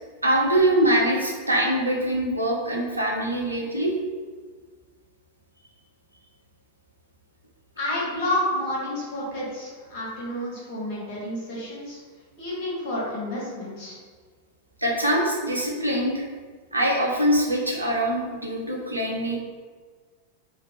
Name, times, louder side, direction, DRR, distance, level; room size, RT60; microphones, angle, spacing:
voice 1, 0.2-3.9 14.8-16.2 16.7-19.4, right 1 dB, 85° right, -2 dB, 0.6 m, -23 dB
voice 2, 7.8-12.0 12.4-14.0, left 1 dB, 50° left, -6 dB, 1.4 m, -30 dB
3.2 x 2.4 x 3.5 m, 1.5 s
figure-of-eight pair, 90°, 0 cm